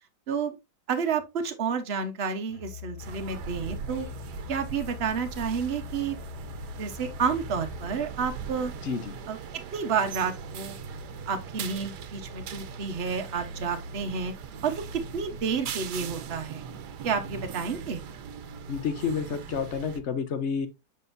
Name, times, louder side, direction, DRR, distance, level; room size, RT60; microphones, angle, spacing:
voice 1, 0.9-4.1 4.5-6.2 6.8-8.7 9.3-10.8 11.3-14.3 14.6-16.6 17.0-18.0, right 6 dB, 45° right, 1.1 m, -30 dB
Musical instrument, 2.5-8.0, left 12 dB, 70° left, 3.6 m, -43 dB
sound 1, 3.0-20.0, right 6 dB, 80° right, 1.4 m, -40 dB
voice 2, 8.8-9.1 18.7-20.7, left 6 dB, 50° left, 1.0 m, -30 dB
7.5 x 5.4 x 2.6 m
omnidirectional pair, 1.8 m